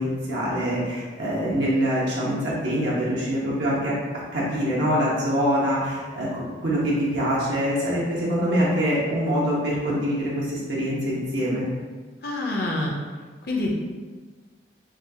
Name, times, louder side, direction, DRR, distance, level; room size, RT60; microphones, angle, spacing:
voice 1, 0.0-4.0 4.3-11.7, equal, 85° right, -6 dB, 1.0 m, -24 dB
voice 2, 12.2-12.9 13.4-13.7, left 2 dB, 55° left, -1 dB, 0.7 m, -26 dB
5.9 x 2.4 x 2.8 m, 1.4 s
head